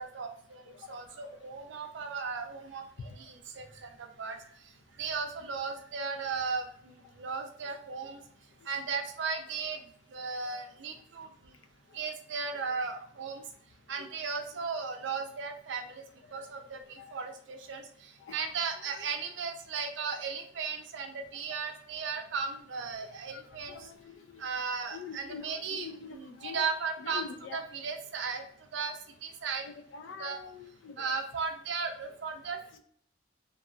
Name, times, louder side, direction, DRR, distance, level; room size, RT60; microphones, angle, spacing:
voice 1, 0.0-0.6 0.9-4.4 5.0-8.2 8.7-9.8 10.1-11.3 11.9-13.4 13.9-16.0 16.3-23.9 24.4-27.3 27.5-28.4 28.7-29.0 29.2-29.6 30.2-30.4 31.0-32.8, right 5 dB, 75° right, 5 dB, 0.4 m, -36 dB
voice 2, 23.7-24.4 24.9-26.6 27.0-27.6 29.6-31.1, left 6 dB, 85° left, 8 dB, 0.4 m, -44 dB
2.6 x 2.3 x 2.2 m, 0.63 s
head